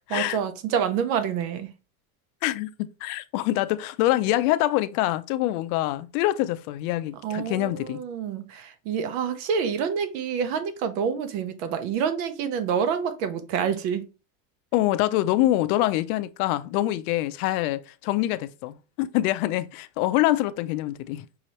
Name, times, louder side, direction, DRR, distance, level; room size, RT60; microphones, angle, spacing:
voice 1, 0.0-1.7 7.2-14.0, right 7 dB, 70° right, 0.9 m, -27 dB
voice 2, 2.4-8.0 14.7-21.3, left 15 dB, 80° left, 0.6 m, -25 dB
5.5 x 3.0 x 3.0 m
cardioid pair, 160°, 43 cm